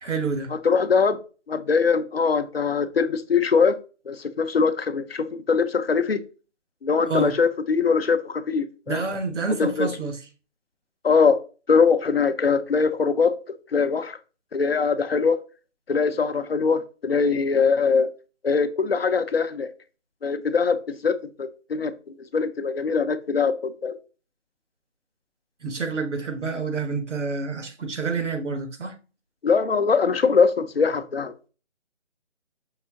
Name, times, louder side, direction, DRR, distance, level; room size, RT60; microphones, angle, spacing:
voice 1, 0.0-0.5 7.0-7.3 8.9-10.2 25.6-28.9, right 4 dB, 80° right, 1.3 m, -28 dB
voice 2, 0.6-1.2 1.5-3.8 4.1-6.2 6.8-9.0 9.6-9.9 11.0-11.4 11.7-14.2 14.5-15.4 15.9-18.1 18.4-19.7 20.2-24.0 29.4-31.3, left 5 dB, 55° left, 0.6 m, -22 dB
5.5 x 2.7 x 3.6 m
hypercardioid pair, 175°, 35 cm